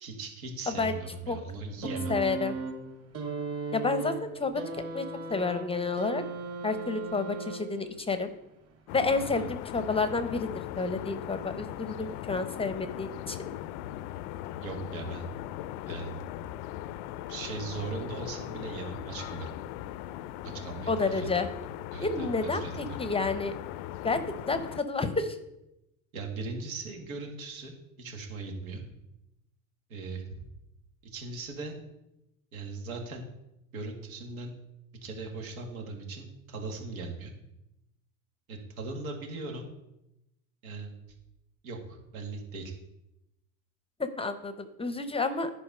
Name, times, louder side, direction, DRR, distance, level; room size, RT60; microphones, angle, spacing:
voice 1, 0.0-2.1 9.2-9.5 14.6-15.2 15.9-16.2 17.3-19.5 20.4-21.5 21.9-23.0 26.1-28.8 29.9-30.2 31.0-31.8 32.5-33.2 33.7-34.5 35.0-37.3 38.5-39.7 40.6-40.9 41.6-42.7, right 3 dB, 80° right, 2 dB, 2.2 m, -39 dB
sound 1, 1.8-8.0 9.0-9.1, right 4 dB, 35° right, 2.3 m, -37 dB
voice 2, 2.1-2.5 3.7-4.6 4.9-5.0 5.3-6.2 6.6-8.3 8.9-10.5 10.8-13.5 20.9-21.5 22.0-23.5 24.0-24.2 24.5-25.4 44.0-45.5, left 3 dB, 15° left, 10 dB, 0.7 m, -30 dB
sound 2, 8.9-24.8, left 13 dB, 60° left, 0.5 m, -39 dB
10.5 x 4.6 x 5.5 m, 0.88 s
hypercardioid pair, 95°, 41 cm